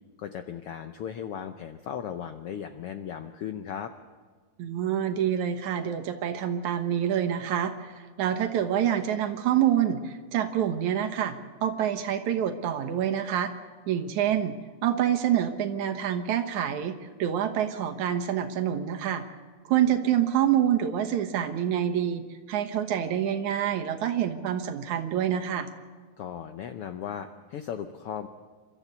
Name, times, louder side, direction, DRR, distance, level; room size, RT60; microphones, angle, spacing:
voice 1, 0.2-3.9 26.2-28.3, left 8 dB, 80° left, 8 dB, 1.3 m, -36 dB
voice 2, 4.6-11.4 11.6-13.5 13.9-14.6 14.8-19.2 19.7-25.7, right 10 dB, 75° right, 6 dB, 2.5 m, -27 dB
28.5 x 13.0 x 8.0 m, 1.5 s
omnidirectional pair, 3.5 m